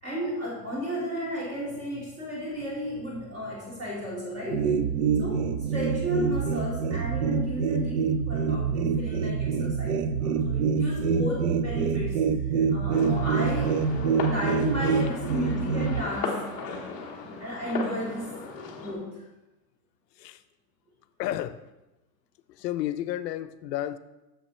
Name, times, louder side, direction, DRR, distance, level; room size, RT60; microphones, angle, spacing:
voice 1, 0.0-4.8 5.2-12.2 12.5-13.8 14.2-16.9 17.4-18.4 18.8-19.1, equal, 30° right, -5 dB, 2.8 m, -33 dB
sound 1, 4.5-16.0, right 5 dB, 70° right, 0.6 m, -26 dB
sound 2, 12.9-18.9, left 4 dB, 15° left, 0.6 m, -36 dB
voice 2, 21.2-21.6 22.5-24.0, left 13 dB, 80° left, 14 dB, 0.6 m, -32 dB
6.8 x 6.1 x 4.2 m, 1.0 s
supercardioid pair, 170°, 49 cm